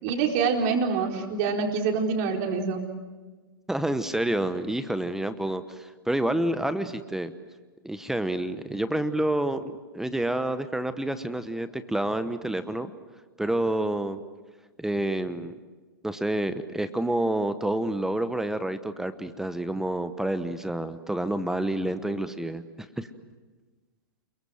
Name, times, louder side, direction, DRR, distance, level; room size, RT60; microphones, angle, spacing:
voice 1, 0.0-2.8, right 5 dB, 45° right, 2 dB, 4.2 m, -26 dB
voice 2, 3.7-7.3 7.8-12.9 13.4-14.2 14.8-15.6 16.0-23.1, right 1 dB, 5° right, 12 dB, 1.0 m, -28 dB
28.5 x 23.0 x 7.7 m, 1.3 s
hypercardioid pair, 115°, 12 cm